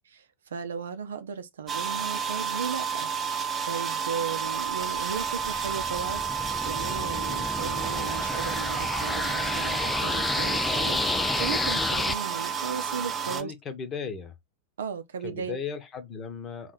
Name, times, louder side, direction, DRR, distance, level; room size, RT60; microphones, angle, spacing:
voice 1, 0.2-13.5 14.8-15.6, right 6 dB, 65° right, 0.6 m, -36 dB
sound 1, 1.7-13.4, right 7 dB, 20° right, 0.8 m, -31 dB
sound 2, 4.8-12.1, left 3 dB, 10° left, 0.3 m, -31 dB
voice 2, 13.2-14.3 15.2-16.7, left 6 dB, 25° left, 1.0 m, -36 dB
3.7 x 3.2 x 4.0 m
figure-of-eight pair, 90°, 0 cm